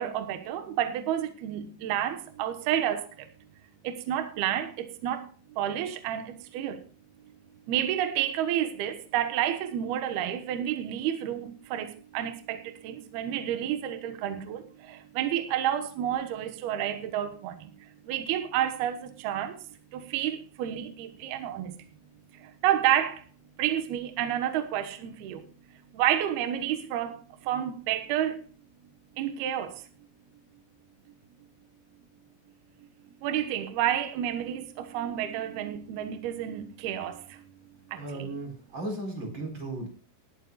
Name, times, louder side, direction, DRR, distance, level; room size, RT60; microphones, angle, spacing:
voice 1, 0.0-3.3 3.8-5.3 5.6-6.8 7.7-19.6 19.9-21.9 22.3-23.3 23.6-28.4 29.2-29.8 33.2-37.4 37.9-38.3, right 11 dB, 70° right, 2.5 m, -30 dB
voice 2, 37.9-39.9, right 2 dB, 25° right, 4.5 m, -36 dB
19.5 x 12.0 x 2.4 m
omnidirectional pair, 6.0 m